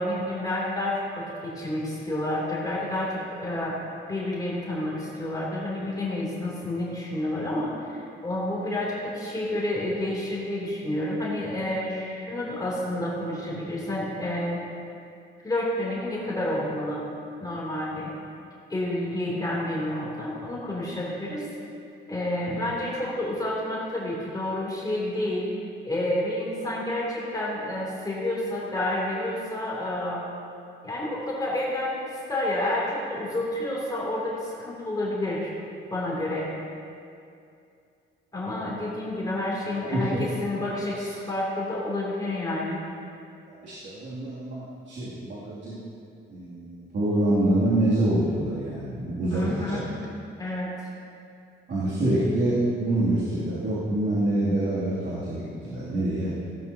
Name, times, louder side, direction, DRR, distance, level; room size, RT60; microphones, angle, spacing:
voice 1, 0.0-3.8 4.1-14.6 15.4-17.1 17.4-18.1 18.7-21.5 22.1-25.4 25.8-30.2 30.8-35.5 35.9-36.5 38.3-42.8 49.3-49.9 50.4-50.7, left 1 dB, 20° left, -6 dB, 3.2 m, -29 dB
voice 2, 39.8-40.3 40.9-41.1 43.5-45.8 46.3-49.8 51.7-56.3, right 1 dB, 65° right, -10 dB, 2.9 m, -26 dB
16.5 x 10.5 x 2.9 m, 2.5 s
cardioid pair, 90°, 20 cm